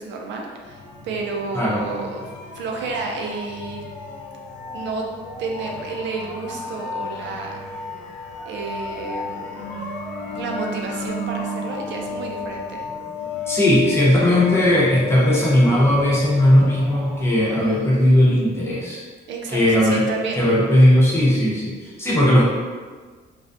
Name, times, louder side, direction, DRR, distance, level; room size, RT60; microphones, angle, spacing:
voice 1, 0.0-2.2 2.5-3.8 4.7-5.1 5.4-7.6 8.4-9.8 10.4-12.8 19.3-20.5, right 4 dB, 85° right, 1 dB, 0.4 m, -31 dB
sound 1, 0.6-18.2, left 3 dB, 90° left, 0.5 m, -33 dB
voice 2, 13.5-19.0 19.5-20.1 20.4-22.5, left 1 dB, 15° left, -6 dB, 0.7 m, -17 dB
2.4 x 2.1 x 2.5 m, 1.5 s
cardioid pair, 120°, 18 cm